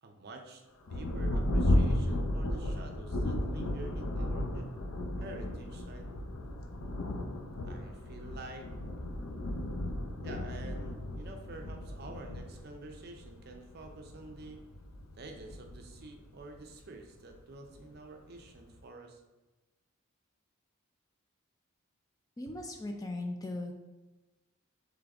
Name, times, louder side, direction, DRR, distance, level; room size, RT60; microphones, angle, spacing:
voice 1, 0.0-4.7 5.2-6.1 7.7-8.7 10.2-14.7 15.2-19.2, right 2 dB, 50° right, 3 dB, 0.5 m, -48 dB
Thunder, 0.9-16.9 17.7-17.8 18.3-18.8, left 1 dB, 85° left, 0.5 m, -34 dB
voice 2, 22.4-23.7, left 2 dB, 15° left, 3 dB, 0.3 m, -38 dB
3.8 x 3.3 x 3.5 m, 1.1 s
head